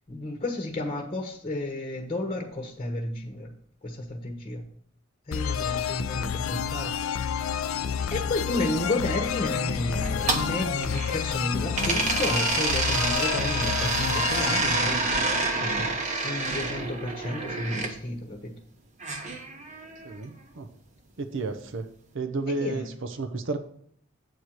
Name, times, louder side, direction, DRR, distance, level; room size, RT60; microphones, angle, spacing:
voice 1, 0.1-3.5 3.8-4.6 5.3-7.2 8.1-18.5 22.5-22.8, left 2 dB, 30° left, 2 dB, 1.0 m, -32 dB
sound 1, 5.3-15.9, left 7 dB, 75° left, 0.4 m, -30 dB
sound 2, 9.9-11.4 11.7-17.9 19.0-20.1, right 3 dB, 35° right, 1.1 m, -28 dB
voice 2, 20.0-20.7 21.2-21.9 22.1-23.6, right 3 dB, 65° right, 8 dB, 0.7 m, -32 dB
8.1 x 4.5 x 6.4 m, 0.63 s
head